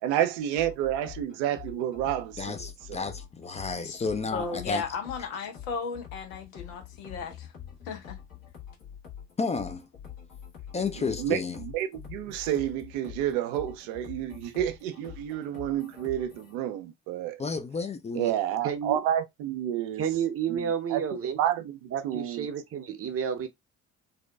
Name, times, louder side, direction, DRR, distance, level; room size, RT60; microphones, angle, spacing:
voice 1, 0.0-3.1 11.0-17.4 18.1-20.1 20.5-21.0 21.4-22.5, right 11 dB, 75° right, 0.5 m, -30 dB
sound 1, 0.5-16.5, left 9 dB, 60° left, 1.2 m, -46 dB
voice 2, 2.4-4.8 9.4-9.9 10.7-11.6 17.4-18.3, left 4 dB, 20° left, 0.4 m, -32 dB
voice 3, 4.3-7.5 7.8-8.2, left 5 dB, 85° left, 0.6 m, -35 dB
voice 4, 18.6-19.0 20.0-21.4 21.9-23.5, right 8 dB, 35° right, 0.7 m, -30 dB
2.6 x 2.2 x 2.2 m
hypercardioid pair, 50°, 39 cm